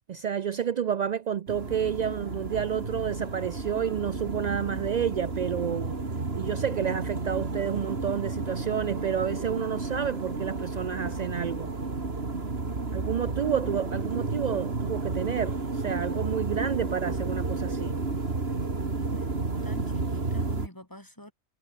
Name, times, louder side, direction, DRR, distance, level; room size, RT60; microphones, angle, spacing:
voice 1, 0.1-6.0 6.4-11.7 12.9-18.0, right 8 dB, 70° right, 0.4 m, -30 dB
sound 1, 1.5-20.7, right 3 dB, 50° right, 2.8 m, -32 dB
voice 2, 18.5-19.4 19.6-21.3, left 1 dB, 15° left, 3.9 m, -47 dB
omnidirectional pair, 1.4 m